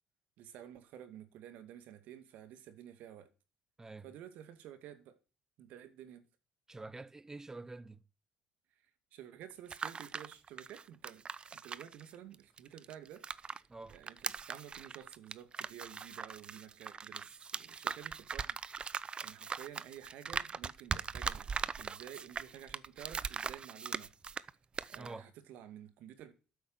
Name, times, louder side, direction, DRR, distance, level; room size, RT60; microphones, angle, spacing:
voice 1, 0.4-3.3 4.0-5.2 5.6-6.2 9.1-11.3 11.5-13.6 13.9-24.1 24.9-26.3, right 10 dB, 70° right, 2.3 m, -52 dB
voice 2, 3.8-4.1 6.7-8.0 13.7-14.0 25.0-25.3, right 3 dB, 20° right, 1.1 m, -47 dB
sound 1, 9.5-13.6 13.9-24.5 24.8-25.1, right 5 dB, 35° right, 0.8 m, -40 dB
12.5 x 9.6 x 8.0 m
hypercardioid pair, 65°, 3 cm